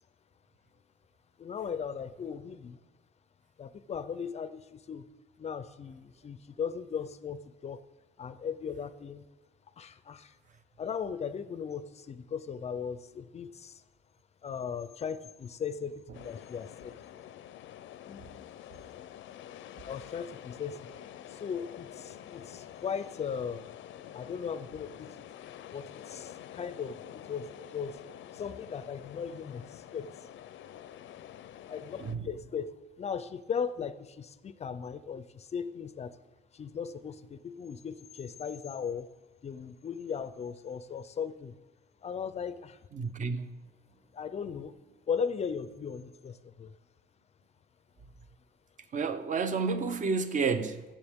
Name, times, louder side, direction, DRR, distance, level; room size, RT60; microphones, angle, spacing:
voice 1, 1.4-2.8 3.6-5.1 5.4-7.8 8.2-9.3 9.8-10.4 10.8-13.8 14.4-16.9 18.1-18.6 19.8-20.9 21.3-23.7 24.1-25.2 25.7-28.0 28.3-30.3 31.7-36.1 36.5-39.1 39.4-41.5 42.0-42.8 44.1-44.7 45.1-46.7, left 6 dB, 35° left, 0.4 m, -37 dB
sound 1, 16.1-32.2, left 11 dB, 90° left, 0.5 m, -48 dB
voice 2, 32.0-32.3 42.9-43.6 48.9-50.8, right 4 dB, 40° right, 0.7 m, -30 dB
16.5 x 7.3 x 3.5 m
wide cardioid pair, 165°, 19 cm